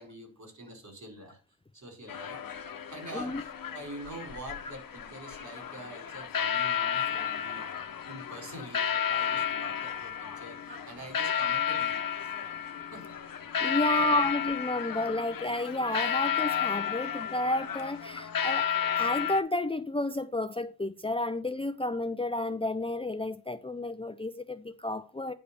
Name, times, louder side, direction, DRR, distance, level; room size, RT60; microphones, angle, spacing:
voice 1, 0.0-1.4 1.7-2.5 2.9-7.7 8.1-12.1 12.9-13.2 13.9-14.1, right 1 dB, 55° right, 4.6 m, -45 dB
sound 1, 2.1-19.4, left 8 dB, 65° left, 1.0 m, -32 dB
voice 2, 13.6-18.7 19.0-25.3, left 1 dB, 15° left, 0.6 m, -31 dB
9.8 x 3.3 x 6.8 m
cardioid pair, 55°, 36 cm